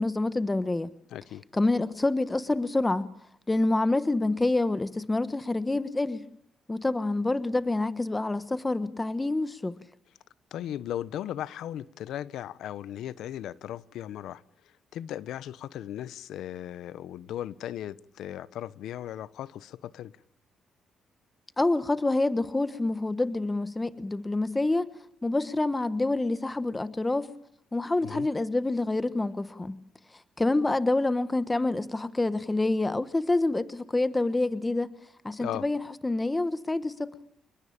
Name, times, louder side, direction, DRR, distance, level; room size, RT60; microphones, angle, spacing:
voice 1, 0.0-0.9 1.5-3.1 3.5-6.2 6.7-9.8 21.6-24.9 25.2-27.3 27.7-29.8 30.4-34.9 35.2-37.1, left 2 dB, 15° left, 1.3 m, -27 dB
voice 2, 1.1-1.4 10.5-14.4 14.9-20.1 28.0-28.3 35.4-35.7, left 11 dB, 80° left, 1.0 m, -37 dB
28.5 x 21.0 x 8.8 m
cardioid pair, 90°, 0 cm